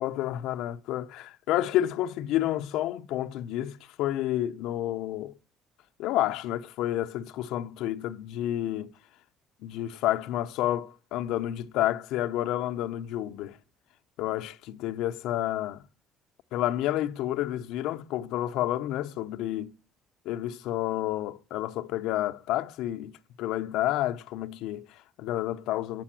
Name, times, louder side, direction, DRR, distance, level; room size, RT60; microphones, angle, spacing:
voice 1, 0.0-5.3 6.0-8.9 9.6-13.6 14.2-15.8 16.5-19.7 20.2-26.0, left 13 dB, 80° left, 0.9 m, -30 dB
12.5 x 9.4 x 7.5 m
cardioid pair, 140°, 0 cm